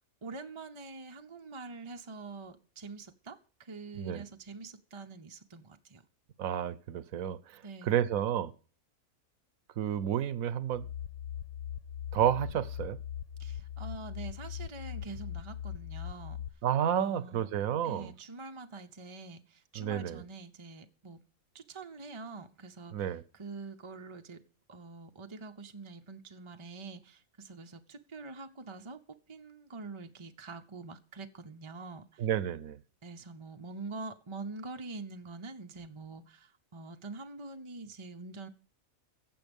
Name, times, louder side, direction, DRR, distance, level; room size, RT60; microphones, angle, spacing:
voice 1, 0.2-6.0 7.6-8.0 13.4-16.4 17.0-17.5 17.8-21.2 21.5-22.9 23.3-24.4 24.7-29.0 29.3-32.3 33.0-38.5, right 3 dB, 30° right, 0.6 m, -45 dB
voice 2, 6.4-8.5 9.8-10.9 12.1-13.0 16.6-18.1 19.8-20.2 22.9-23.2 32.2-32.8, right 10 dB, 75° right, 1.2 m, -31 dB
sound 1, 10.7-16.5, left 10 dB, 55° left, 0.8 m, -40 dB
15.0 x 7.8 x 5.3 m
omnidirectional pair, 1.5 m